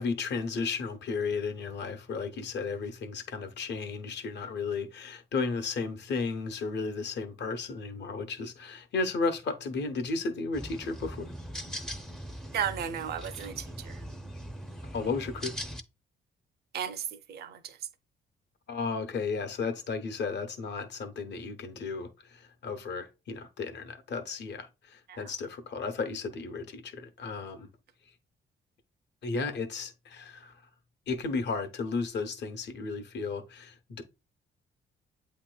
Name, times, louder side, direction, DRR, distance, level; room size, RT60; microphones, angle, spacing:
voice 1, 0.0-11.3 14.9-15.5 18.7-27.7 29.2-30.6 31.1-34.0, left 4 dB, 60° left, 0.9 m, -34 dB
sound 1, 10.5-15.8, equal, 5° left, 0.5 m, -41 dB
voice 2, 12.5-14.0 16.7-17.8 25.1-25.2, right 8 dB, 55° right, 0.5 m, -34 dB
8.2 x 2.9 x 2.3 m
cardioid pair, 90°, 20 cm